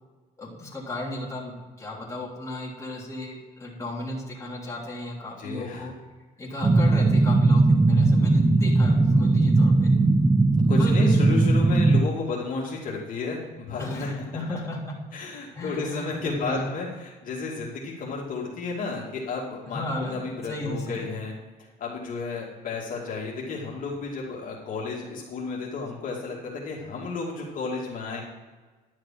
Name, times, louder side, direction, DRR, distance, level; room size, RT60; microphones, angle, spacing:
voice 1, 0.4-5.9 6.4-9.9 10.8-11.1 13.8-15.0 15.5-16.6 19.7-21.1, left 1 dB, 15° left, -4 dB, 3.1 m, -35 dB
voice 2, 5.4-5.9 10.7-14.1 15.1-19.8 20.1-21.4 21.8-28.2, left 4 dB, 55° left, -3 dB, 2.4 m, -32 dB
sound 1, 6.6-12.0, right 2 dB, 15° right, 0.5 m, -19 dB
11.5 x 6.4 x 5.7 m, 1.3 s
cardioid pair, 110°, 17 cm